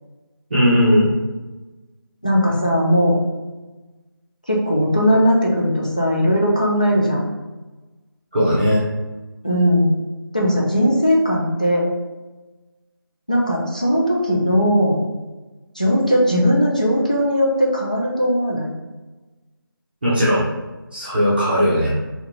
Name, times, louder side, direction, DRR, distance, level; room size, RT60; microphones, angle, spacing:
voice 1, 0.5-1.1 8.3-8.8 20.0-20.4 20.9-22.0, equal, 25° right, -10 dB, 0.8 m, -17 dB
voice 2, 2.2-3.2 4.5-7.3 9.4-10.0 10.3-11.9 13.3-15.0 15.8-18.7, equal, 20° left, -3 dB, 0.4 m, -18 dB
2.8 x 2.7 x 3.3 m, 1.2 s
figure-of-eight pair, 170°, 12 cm